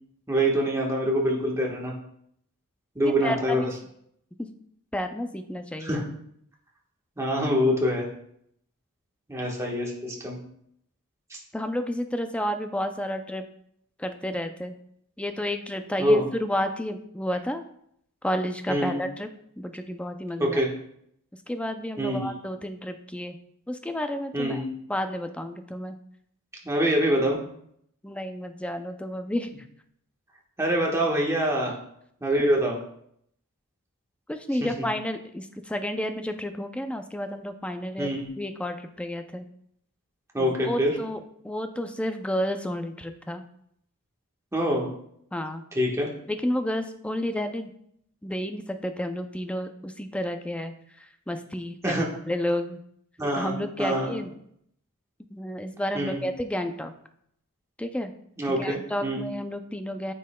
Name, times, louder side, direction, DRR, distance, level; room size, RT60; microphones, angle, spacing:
voice 1, 0.3-1.9 2.9-3.7 5.8-6.0 7.2-8.1 9.3-10.4 11.3-11.4 16.0-16.2 18.7-19.0 20.4-20.7 22.0-22.3 24.3-24.7 26.6-27.4 30.6-31.8 32.2-32.8 34.6-34.9 38.0-38.3 40.3-40.9 44.5-44.9 45.7-46.1 51.8-52.1 53.2-54.1 55.9-56.2 58.4-59.3, equal, 15° right, -2 dB, 1.3 m, -25 dB
voice 2, 3.0-3.7 4.4-4.5 4.9-6.0 11.5-13.5 14.0-14.8 15.2-17.6 18.2-19.3 19.6-20.6 21.5-23.4 23.7-24.6 24.9-26.0 28.0-29.5 34.3-38.1 38.4-39.5 40.4-41.2 41.4-43.4 45.3-45.6 46.3-47.7 48.2-52.8 53.3-54.3 55.3-56.9 57.8-58.1 58.5-60.1, left 1 dB, 5° left, 7 dB, 0.4 m, -31 dB
9.1 x 5.2 x 2.2 m, 0.70 s
head